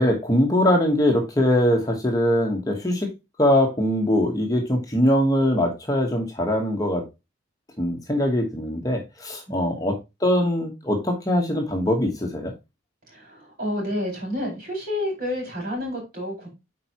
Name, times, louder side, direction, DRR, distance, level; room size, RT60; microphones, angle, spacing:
voice 1, 0.0-3.1 3.4-7.0 7.8-12.5, left 1 dB, 20° left, 1.2 m, -22 dB
voice 2, 9.5-9.8 13.1-16.5, left 1 dB, 50° right, 4.8 m, -30 dB
8.8 x 4.6 x 2.9 m
head